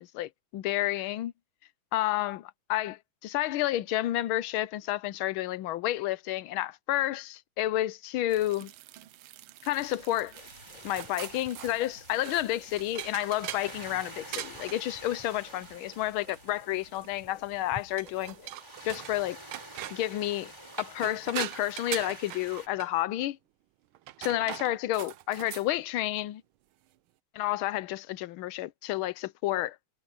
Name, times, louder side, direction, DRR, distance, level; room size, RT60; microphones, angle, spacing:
voice 1, 0.0-1.3 1.9-8.7 9.6-10.3 10.8-18.4 18.8-19.4 19.9-20.5 20.8-23.4 24.2-26.4 27.3-29.8, left 14 dB, 85° left, 1.5 m, -30 dB
sound 1, 8.3-17.2 18.0-19.2 19.5-20.1 20.6-22.9 23.9-25.7, right 13 dB, 90° right, 1.6 m, -42 dB
sound 2, 9.7-18.5, left 2 dB, 40° left, 5.8 m, -57 dB
sound 3, 10.3-22.7, right 1 dB, 10° right, 3.8 m, -49 dB
omnidirectional pair, 2.2 m